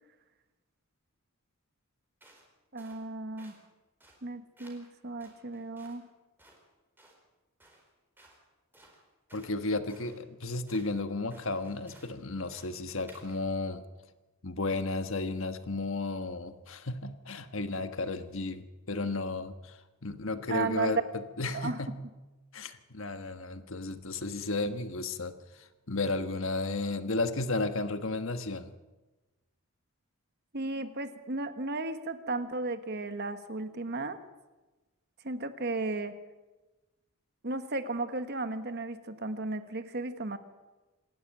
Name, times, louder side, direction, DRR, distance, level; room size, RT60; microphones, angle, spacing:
sound 1, 2.2-2.5 2.8-3.0 3.4-3.6 4.0-4.2 4.6-4.9 5.2-6.0 6.4-6.6 7.0-7.2 7.6-7.9 8.2-8.4 8.7-9.6 9.9-10.2 10.7-10.9 11.3-12.1 12.4-12.8 13.1-13.4, right 1 dB, 10° right, 4.4 m, -58 dB
voice 1, 2.7-3.5 4.2-6.1 20.5-21.0 21.5-21.8 30.5-34.2 35.2-36.1 37.4-40.4, right 3 dB, 50° right, 9 dB, 1.4 m, -34 dB
voice 2, 9.3-13.8 14.4-21.0 21.4-22.0 22.5-28.7, left 3 dB, 60° left, 9 dB, 1.4 m, -33 dB
26.5 x 12.5 x 9.0 m, 1.2 s
head